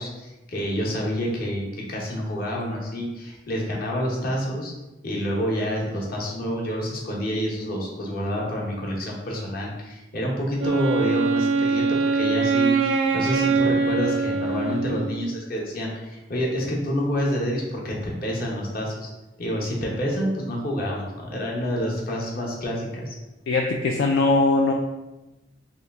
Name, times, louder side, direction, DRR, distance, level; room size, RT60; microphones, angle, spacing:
voice 1, 0.0-4.7 5.0-19.1 19.4-23.1, equal, 50° left, -2 dB, 0.9 m, -28 dB
Wind instrument woodwind instrument, 10.6-15.4, right 4 dB, 75° right, 0.3 m, -23 dB
voice 2, 23.5-24.7, left 3 dB, 70° left, 1 dB, 0.3 m, -20 dB
3.0 x 3.0 x 3.5 m, 1.0 s
head